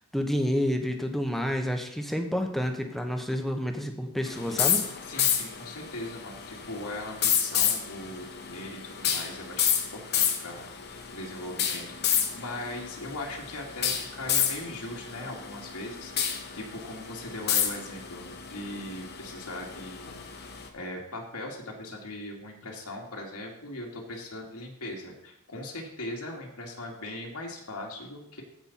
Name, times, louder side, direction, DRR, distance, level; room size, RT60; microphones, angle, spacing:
voice 1, 0.1-4.8, equal, ahead, 4 dB, 1.1 m, -29 dB
sound 1, 4.3-20.7, left 8 dB, 50° left, 1.2 m, -30 dB
voice 2, 5.0-28.4, left 1 dB, 80° left, -1 dB, 2.4 m, -40 dB
15.5 x 5.3 x 4.3 m, 0.85 s
head